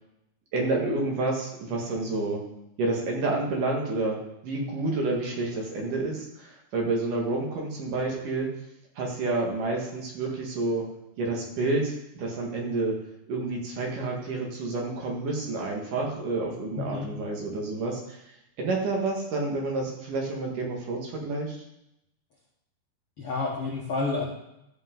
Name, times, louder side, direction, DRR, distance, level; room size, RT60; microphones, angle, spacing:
voice 1, 0.5-2.4 2.8-4.2 4.4-8.6 9.0-10.9 11.2-13.0 13.3-18.2 18.6-21.6, right 2 dB, 60° right, -1 dB, 3.2 m, -29 dB
voice 2, 16.8-17.1 23.2-24.2, left 3 dB, 55° left, -4 dB, 1.6 m, -29 dB
13.0 x 7.7 x 3.8 m, 0.82 s
omnidirectional pair, 4.5 m